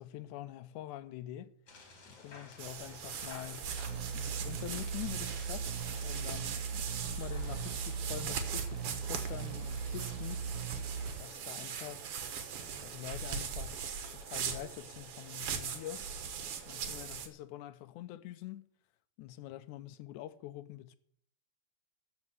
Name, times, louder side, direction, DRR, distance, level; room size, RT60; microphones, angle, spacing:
voice 1, 0.0-1.5 2.1-3.7 4.1-5.7 6.0-10.7 11.2-12.1 12.8-16.1 16.7-18.6 19.2-21.0, left 13 dB, 85° left, 2.1 m, -45 dB
sound 1, 1.7-11.2, left 3 dB, 50° left, 3.1 m, -55 dB
sound 2, 2.6-17.3, right 6 dB, 60° right, 1.9 m, -40 dB
sound 3, 3.7-11.2, right 6 dB, 75° right, 2.1 m, -39 dB
13.5 x 5.3 x 8.1 m
omnidirectional pair, 3.4 m